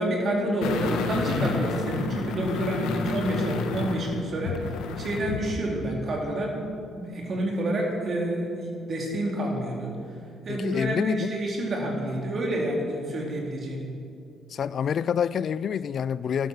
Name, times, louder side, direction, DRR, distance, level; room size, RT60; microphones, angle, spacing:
voice 1, 0.0-4.6 5.0-9.9 10.4-13.8, right 1 dB, 50° right, 3.9 m, -28 dB
sound 1, 0.6-5.5 5.8-5.9, left 4 dB, 90° left, 1.4 m, -30 dB
voice 2, 10.5-11.3 14.5-16.5, left 8 dB, 55° left, 0.4 m, -27 dB
13.5 x 12.0 x 6.6 m
cardioid pair, 90°, 0 cm